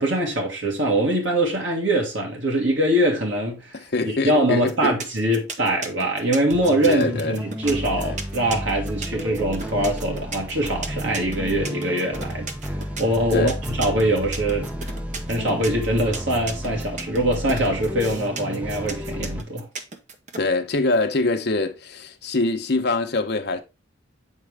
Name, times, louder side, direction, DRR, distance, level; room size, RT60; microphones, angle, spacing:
voice 1, 0.0-3.8 4.2-12.5 13.0-14.7 15.3-19.7, right 1 dB, 75° right, 2.0 m, -23 dB
voice 2, 3.7-4.9 6.9-7.4 7.9-8.2 13.3-13.6 20.4-23.6, left 2 dB, 55° left, 0.8 m, -24 dB
sound 1, 4.7-20.4, right 4 dB, 40° right, 0.7 m, -35 dB
sound 2, 6.5-19.4, equal, 5° right, 0.5 m, -32 dB
7.5 x 4.3 x 3.4 m
head